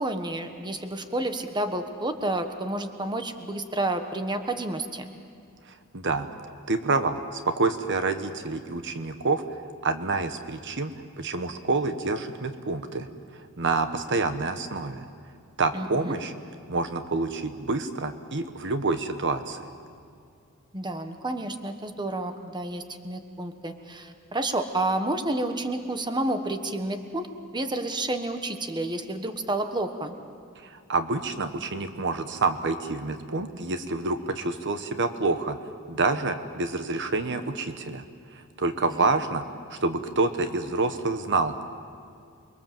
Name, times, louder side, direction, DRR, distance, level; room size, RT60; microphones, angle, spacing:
voice 1, 0.0-5.1 15.7-16.1 20.7-27.3 27.5-30.1 38.9-39.1, right 2 dB, 20° right, 7 dB, 1.3 m, -30 dB
voice 2, 5.9-6.3 6.7-9.4 9.8-13.1 13.6-15.0 15.6-16.3 16.7-19.7 30.6-35.6 35.9-38.0 38.6-39.4 39.7-41.5, right 3 dB, 55° right, 9 dB, 1.2 m, -27 dB
28.5 x 22.5 x 7.6 m, 2.3 s
head